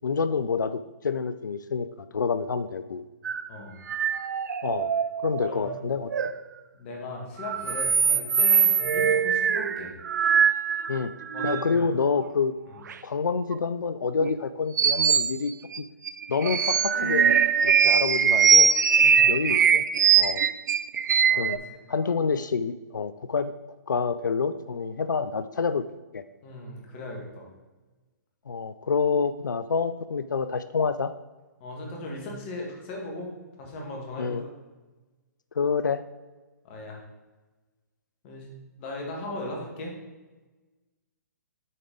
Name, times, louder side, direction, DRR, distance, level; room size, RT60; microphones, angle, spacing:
voice 1, 0.0-1.9 2.1-3.0 4.6-4.9 5.2-6.3 10.9-11.1 11.4-12.5 13.0-15.8 16.3-17.4 17.6-18.7 19.3-19.9 20.2-20.4 21.4-21.6 21.9-23.5 23.9-25.8 26.1-26.2 28.5-31.1 34.2-34.4 35.6-36.0, left 5 dB, 85° left, 12 dB, 0.4 m, -27 dB
sound 1, 3.2-3.5 3.9-5.8 6.1-6.3 7.4-11.8 12.9-13.0 13.5-13.6 14.2-14.3 14.8-15.3 15.7-15.8 16.1-21.6, right 7 dB, 75° right, 0.4 m, -22 dB
voice 2, 5.5-5.8 6.7-9.9 11.3-11.8 12.7-12.8 19.0-19.2 21.3-21.8 26.4-27.5 31.6-33.3 33.6-34.5 36.6-37.0 38.2-38.5 38.8-39.9, left 2 dB, 35° left, -1 dB, 2.0 m, -38 dB
8.0 x 4.8 x 3.9 m, 1.2 s
hypercardioid pair, 135°, 10 cm